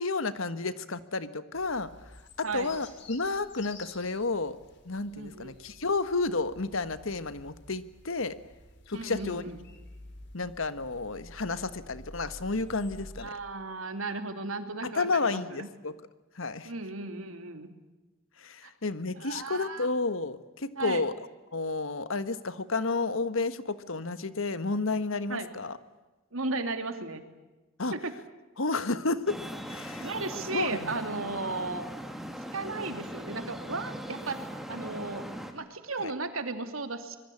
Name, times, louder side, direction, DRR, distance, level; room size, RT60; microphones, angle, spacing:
voice 1, 0.0-1.9 2.4-4.6 4.8-8.3 8.9-9.4 10.3-13.3 14.8-15.9 16.4-16.7 18.4-21.1 21.5-25.8 27.8-27.9 28.6-29.4 29.7-30.1 30.5-31.2 36.0-36.1, left 3 dB, 75° left, 12 dB, 1.5 m, -31 dB
sound 1, 1.5-13.3, left 1 dB, 55° left, 4.3 m, -51 dB
voice 2, 5.1-5.5 8.9-9.6 13.2-15.7 16.6-17.7 18.6-18.7 19.2-19.9 20.8-21.0 25.3-25.5 26.3-27.2 27.9-28.1 30.0-31.8 32.5-35.2 35.5-37.2, right 3 dB, 85° right, 7 dB, 2.8 m, -35 dB
Traffic noise roadway noise, 29.3-35.5, equal, ahead, 2.5 m, -40 dB
25.5 x 22.0 x 8.6 m, 1.1 s
head